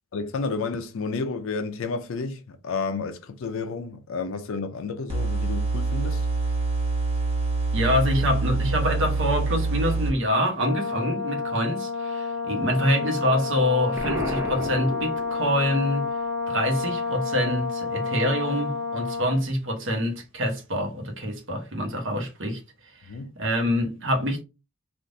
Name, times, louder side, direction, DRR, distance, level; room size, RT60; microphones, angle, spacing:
voice 1, 0.1-6.2 23.1-23.3, left 4 dB, 60° left, 0.4 m, -31 dB
sound 1, 5.1-10.1, right 3 dB, 30° right, 0.9 m, -25 dB
voice 2, 7.7-16.1 16.5-23.1 23.4-24.4, equal, 60° right, 1.0 m, -26 dB
Brass instrument, 10.6-19.5, left 4 dB, 75° right, 0.6 m, -30 dB
Explosion, 14.0-15.8, equal, 10° right, 0.6 m, -32 dB
3.4 x 2.4 x 2.6 m
head